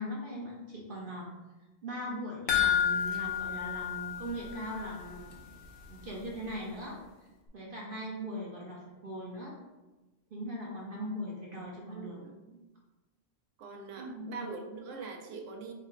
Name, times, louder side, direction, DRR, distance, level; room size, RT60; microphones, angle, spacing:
voice 1, 0.0-1.3 1.8-5.4 5.9-7.0 7.5-9.5 10.3-12.2 14.0-14.4, equal, 50° right, -3 dB, 0.8 m, -40 dB
sound 1, 2.5-5.0 5.3-5.4 5.8-5.9, left 9 dB, 60° left, 0.7 m, -30 dB
voice 2, 7.8-8.1 10.6-10.9 11.9-12.6 13.6-15.7, right 4 dB, 85° right, 2 dB, 1.0 m, -44 dB
4.6 x 2.1 x 3.7 m, 1.1 s
omnidirectional pair, 1.3 m